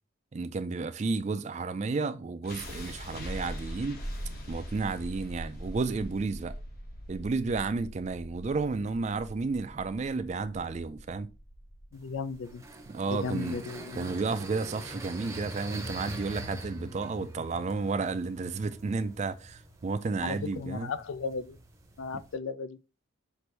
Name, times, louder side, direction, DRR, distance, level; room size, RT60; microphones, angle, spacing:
voice 1, 0.3-4.0 4.5-6.6 7.1-11.3 12.9-13.6 14.0-20.9 22.1-22.2, right 4 dB, 35° right, 0.3 m, -32 dB
sound 1, 2.4-14.5, equal, 50° left, 1.0 m, -42 dB
voice 2, 11.9-12.6 13.1-14.1 20.2-21.6 22.0-22.8, left 5 dB, 75° left, 0.4 m, -36 dB
sound 2, 11.9-22.3, right 1 dB, 15° right, 0.7 m, -44 dB
6.0 x 2.6 x 3.2 m
head